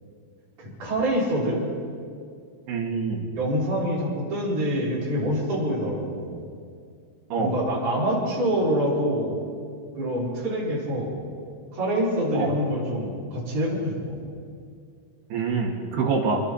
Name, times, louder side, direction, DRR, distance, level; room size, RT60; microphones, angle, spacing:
voice 1, 0.6-1.6 3.3-6.3 7.4-9.4 10.0-11.1 11.7-14.2, equal, 50° right, -7 dB, 7.1 m, -26 dB
voice 2, 2.7-3.3 7.3-7.6 12.3-12.6 15.3-16.4, right 4 dB, 90° right, -2 dB, 4.3 m, -26 dB
29.5 x 21.5 x 4.3 m, 2.3 s
omnidirectional pair, 4.5 m